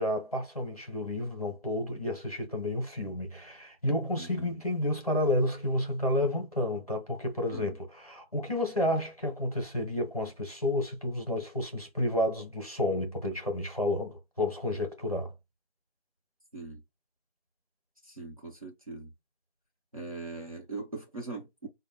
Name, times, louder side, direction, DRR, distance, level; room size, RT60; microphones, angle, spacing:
voice 1, 0.0-15.3, left 1 dB, 35° left, 1.0 m, -31 dB
voice 2, 4.2-4.5 7.5-7.8 16.5-16.8 18.0-19.1 19.9-21.7, right 3 dB, 35° right, 1.1 m, -41 dB
4.9 x 2.2 x 3.3 m
figure-of-eight pair, 170°, 32 cm